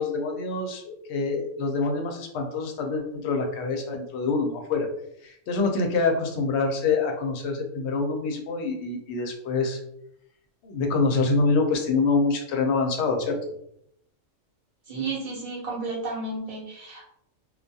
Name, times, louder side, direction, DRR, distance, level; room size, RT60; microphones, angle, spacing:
voice 1, 0.0-4.9 5.2-9.8 10.6-13.4, left 4 dB, 65° left, 3 dB, 0.8 m, -26 dB
voice 2, 14.9-17.0, right 3 dB, 30° right, -5 dB, 0.8 m, -32 dB
2.3 x 2.3 x 2.6 m, 0.74 s
omnidirectional pair, 1.3 m